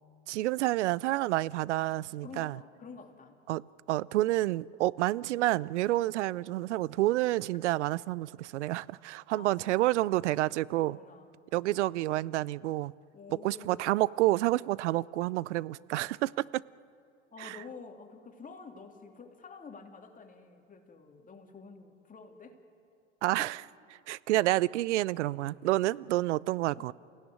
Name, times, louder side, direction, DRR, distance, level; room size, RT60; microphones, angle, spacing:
voice 1, 0.3-2.6 3.5-11.0 11.5-12.9 13.4-16.6 17.4-17.6 23.2-23.6 24.1-26.9, right 17 dB, 70° right, 0.6 m, -29 dB
voice 2, 2.2-3.4 6.0-6.9 9.3-10.0 10.8-11.3 13.1-14.0 17.3-22.6 23.4-23.5 26.7-26.9, left 4 dB, 20° left, 3.0 m, -49 dB
29.0 x 16.5 x 9.6 m
hypercardioid pair, 85°, 36 cm